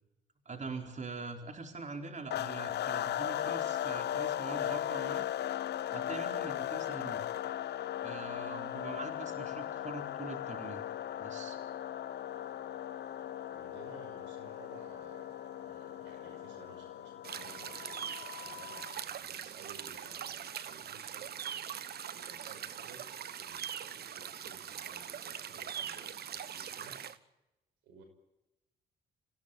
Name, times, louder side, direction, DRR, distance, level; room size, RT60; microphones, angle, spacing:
voice 1, 0.4-5.3 5.9-7.3 8.0-10.9 11.2-11.6, right 3 dB, 40° right, 4 dB, 4.4 m, -43 dB
sound 1, 2.3-19.0, left 11 dB, 65° left, 0.8 m, -38 dB
Wind instrument woodwind instrument, 2.9-17.0, left 1 dB, 25° right, 5.3 m, -59 dB
voice 2, 13.5-15.3 15.6-21.8 22.1-27.0 27.8-28.0, right 4 dB, 80° right, 5 dB, 5.7 m, -56 dB
sound 2, 17.2-27.2, right 9 dB, 60° right, 1.3 m, -42 dB
26.5 x 16.5 x 9.1 m, 0.95 s
hypercardioid pair, 50°, 19 cm